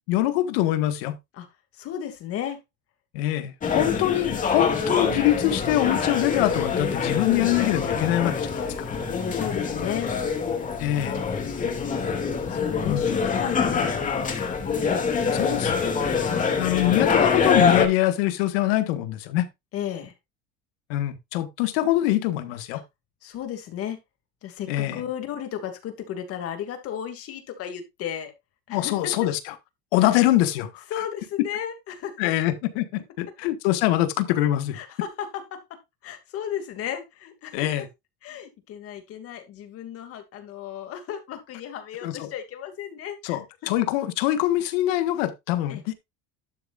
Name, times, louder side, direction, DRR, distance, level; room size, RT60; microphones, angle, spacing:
voice 1, 0.1-1.2 3.1-8.5 10.8-11.2 12.8-13.1 15.3-15.7 16.6-19.5 20.9-22.8 24.7-25.0 28.7-29.5 29.9-31.1 32.2-34.8 37.5-37.9 42.0-42.3 43.2-45.9, left 14 dB, 85° left, 1.6 m, -24 dB
voice 2, 1.7-2.6 8.8-9.0 9.3-10.1 11.4-11.9 12.5-14.6 16.2-16.6 19.7-20.1 22.7-22.8 23.2-24.0 24.4-28.3 28.7-29.1 30.0-30.1 30.9-32.2 34.7-37.5 38.2-43.4 45.7-45.8, left 9 dB, 50° left, 2.5 m, -34 dB
sound 1, 3.6-17.9, left 5 dB, 25° left, 2.4 m, -25 dB
12.0 x 7.0 x 2.5 m
cardioid pair, 135°, 30 cm